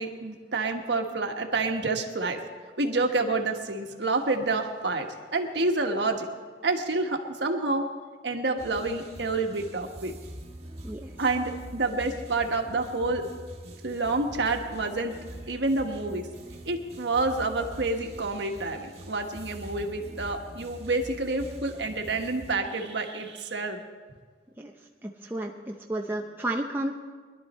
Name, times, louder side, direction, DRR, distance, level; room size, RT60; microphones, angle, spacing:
voice 1, 0.0-2.4 2.8-6.3 6.6-7.9 8.2-10.1 11.2-13.2 13.8-15.2 15.5-16.3 16.7-23.8, right 3 dB, 70° right, 4 dB, 1.4 m, -28 dB
sound 1, 8.6-22.5, right 1 dB, 35° right, 1.5 m, -44 dB
voice 2, 25.0-26.9, right 1 dB, 10° right, 0 dB, 0.7 m, -32 dB
21.0 x 11.5 x 4.3 m, 1.5 s
head